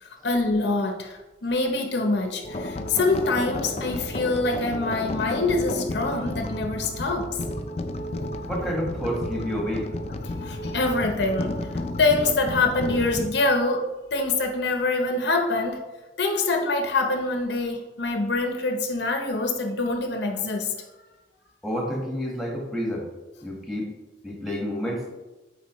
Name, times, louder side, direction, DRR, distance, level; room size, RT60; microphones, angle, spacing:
voice 1, 0.0-7.3 10.4-15.8 16.2-20.7, left 3 dB, 60° left, 3 dB, 0.7 m, -25 dB
sound 1, 2.4-13.3, left 1 dB, 35° left, 0.4 m, -32 dB
voice 2, 8.4-9.9 21.6-23.0 23.4-23.9 24.2-25.0, equal, ahead, -2 dB, 1.2 m, -29 dB
8.4 x 4.0 x 3.0 m, 1.1 s
head